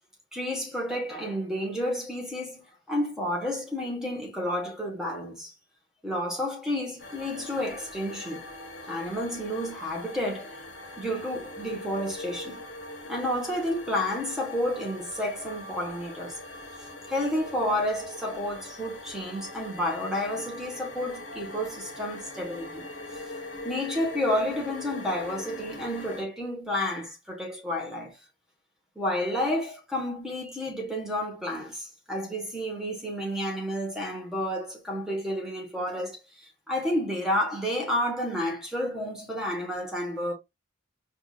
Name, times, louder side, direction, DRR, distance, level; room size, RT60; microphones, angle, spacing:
voice 1, 0.3-5.5 6.0-8.5 8.9-10.6 11.0-12.7 13.1-16.4 17.1-22.8 23.6-28.2 29.0-40.3, left 1 dB, 5° right, 1.0 m, -30 dB
sound 1, 7.0-26.2, left 1 dB, 65° left, 0.9 m, -42 dB
4.7 x 2.5 x 2.2 m
head